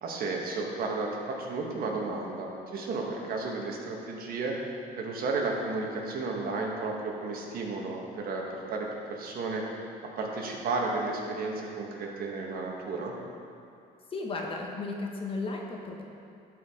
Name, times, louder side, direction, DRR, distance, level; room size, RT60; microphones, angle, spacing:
voice 1, 0.0-4.6 5.0-9.6 10.2-13.1, right 3 dB, 60° right, 0 dB, 1.4 m, -33 dB
voice 2, 14.1-16.0, left 3 dB, 30° left, 0 dB, 1.1 m, -34 dB
12.5 x 4.8 x 3.6 m, 2.6 s
cardioid pair, 110°, 17 cm